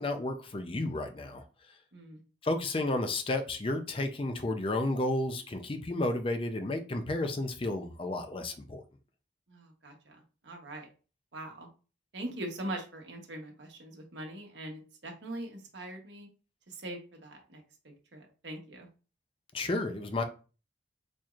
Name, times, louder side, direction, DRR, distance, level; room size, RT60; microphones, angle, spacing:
voice 1, 0.0-1.5 2.4-8.8 19.5-20.2, left 2 dB, 30° left, 6 dB, 0.5 m, -32 dB
voice 2, 9.5-10.9 11.3-11.7 12.1-16.3 16.7-18.9, right 1 dB, 75° right, 1 dB, 1.1 m, -42 dB
4.3 x 3.0 x 2.4 m, 0.35 s
head